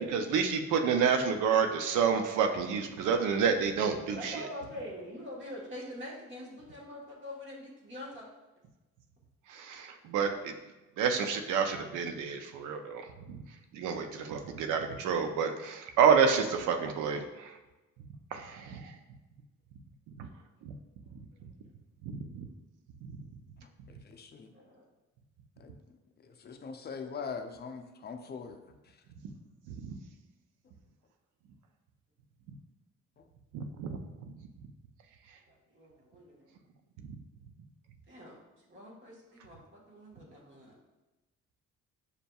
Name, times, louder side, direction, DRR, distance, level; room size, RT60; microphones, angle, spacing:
voice 1, 0.0-4.4 9.5-10.5 11.0-13.4 13.7-17.5 18.3-18.9 20.2-20.3 20.6-20.7 22.0-22.5 29.2-29.3 29.7-30.0 33.5-34.0 37.0-37.1, right 6 dB, 85° right, 5 dB, 0.5 m, -29 dB
voice 2, 4.1-8.2 13.9-14.2 18.7-18.8 24.5-24.8 35.5-36.5 38.1-38.4 38.7-40.7, left 1 dB, 40° right, -4 dB, 1.4 m, -45 dB
voice 3, 24.1-24.5 25.6-25.7 26.4-28.6, left 5 dB, 35° left, 6 dB, 0.5 m, -41 dB
6.6 x 2.6 x 2.3 m, 1.1 s
cardioid pair, 90°, 30 cm